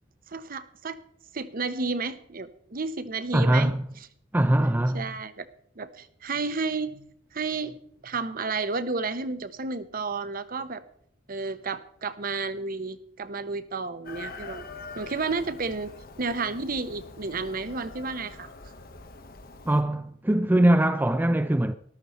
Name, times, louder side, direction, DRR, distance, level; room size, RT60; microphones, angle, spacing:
voice 1, 0.3-1.0 1.3-3.8 4.9-5.4 5.8-7.1 7.3-7.8 8.0-10.8 11.3-14.7 15.0-18.5, right 4 dB, 45° right, 0.9 m, -31 dB
voice 2, 3.3-3.8 4.3-5.1 19.7-21.7, right 1 dB, 10° right, 0.4 m, -22 dB
Chicken rooster, 14.0-19.8, left 3 dB, 50° left, 1.2 m, -44 dB
13.5 x 12.5 x 4.3 m
head